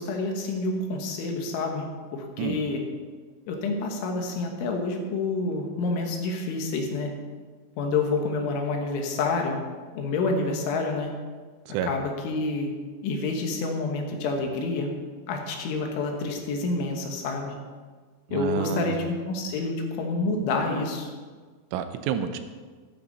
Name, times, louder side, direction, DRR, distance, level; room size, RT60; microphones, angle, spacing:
voice 1, 0.0-1.9 2.1-2.8 3.5-7.1 7.8-9.6 10.0-11.1 11.8-12.7 13.0-14.9 15.3-17.6 18.3-21.1, left 3 dB, 75° left, 3 dB, 3.8 m, -28 dB
voice 2, 18.3-19.0 21.7-22.4, right 9 dB, 85° right, 9 dB, 3.3 m, -28 dB
14.0 x 12.0 x 4.2 m, 1.5 s
omnidirectional pair, 5.6 m